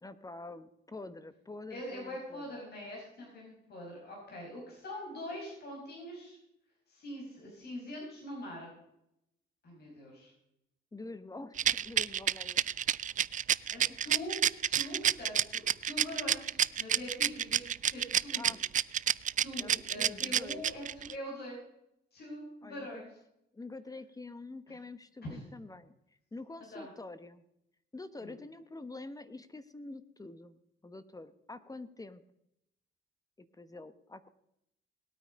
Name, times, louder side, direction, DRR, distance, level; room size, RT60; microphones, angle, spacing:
voice 1, 0.0-2.5 10.9-12.6 13.9-14.0 18.4-18.6 19.6-20.6 22.6-23.0 23.5-26.0 26.3-27.4 27.9-32.2 33.4-34.3, left 2 dB, 20° left, 13 dB, 1.0 m, -46 dB
voice 2, 1.7-6.4 6.9-8.7 9.6-10.3 13.7-14.4 14.6-18.5 19.4-21.6 22.1-23.1 24.7-24.8 25.2-25.4 26.7-26.9 28.2-28.3, left 1 dB, 55° left, -2 dB, 5.6 m, -43 dB
Rattle, 11.6-21.1, right 9 dB, 40° right, 0.4 m, -28 dB
18.5 x 9.1 x 5.2 m, 0.81 s
cardioid pair, 90°, 20 cm